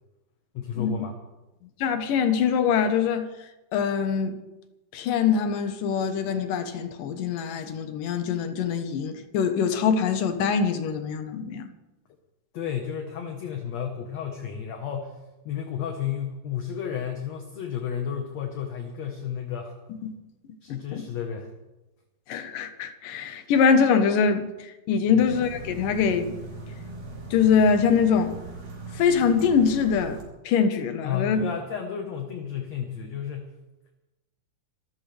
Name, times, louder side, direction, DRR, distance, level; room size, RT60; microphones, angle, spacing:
voice 1, 0.5-1.1 12.5-15.2 15.5-19.7 20.6-21.5 25.1-25.3 31.0-33.5, left 8 dB, 60° left, 2.3 m, -32 dB
voice 2, 1.8-3.3 3.7-4.4 4.9-11.7 20.0-20.1 20.7-21.1 22.3-24.5 24.9-26.3 27.3-28.4 28.9-31.5, left 6 dB, 75° left, 2.8 m, -23 dB
sound 1, 25.2-30.2, right 2 dB, 60° right, 5.0 m, -39 dB
26.0 x 14.0 x 3.4 m
omnidirectional pair, 3.9 m